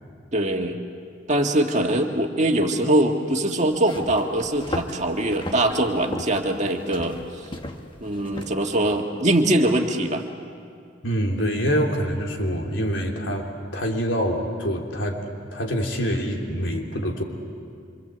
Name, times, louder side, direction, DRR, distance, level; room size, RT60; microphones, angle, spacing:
voice 1, 0.3-0.8 1.3-7.2 8.0-10.2, right 1 dB, 40° right, 3 dB, 1.9 m, -22 dB
sound 1, 3.7-8.9, left 1 dB, 25° left, 1.3 m, -36 dB
voice 2, 11.0-17.2, equal, 85° left, 1 dB, 3.3 m, -26 dB
26.0 x 25.5 x 8.1 m, 2.3 s
head